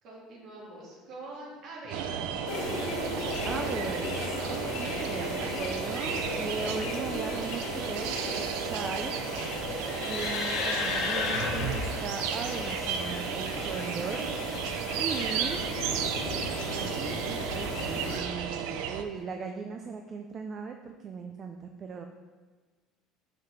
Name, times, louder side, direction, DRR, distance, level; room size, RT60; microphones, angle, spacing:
voice 1, 0.0-2.3, right 2 dB, 50° right, -4 dB, 2.3 m, -45 dB
sound 1, 1.9-19.0, right 8 dB, 80° right, 0.6 m, -34 dB
sound 2, 2.5-18.2, left 3 dB, 60° left, 1.4 m, -35 dB
voice 2, 3.4-9.2 10.0-14.3 15.0-15.6 17.0-22.1, right 5 dB, 30° right, 4 dB, 0.4 m, -38 dB
5.9 x 5.0 x 5.8 m, 1.4 s
cardioid pair, 155°, 0 cm